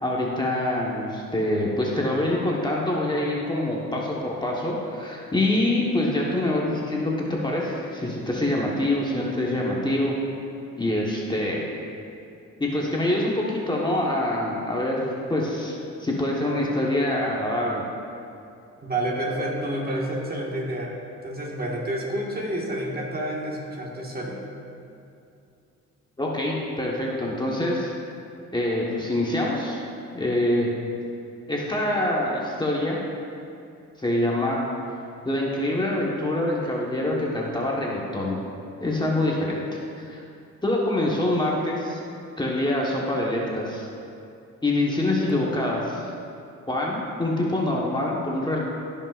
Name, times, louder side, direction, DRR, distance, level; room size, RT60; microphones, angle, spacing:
voice 1, 0.0-10.2 10.8-11.7 12.6-15.7 16.0-17.8 26.2-27.9 28.5-29.8 30.1-30.7 31.5-33.0 34.0-34.6 35.2-38.4 38.8-39.6 40.0-40.2 40.6-42.0 42.4-43.9 44.6-46.1 46.7-48.6, left 1 dB, 15° left, -3 dB, 1.2 m, -25 dB
voice 2, 18.8-20.9 21.2-24.4, right 1 dB, 30° right, -2 dB, 1.6 m, -29 dB
16.0 x 5.4 x 2.5 m, 2.5 s
cardioid pair, 90°, 30 cm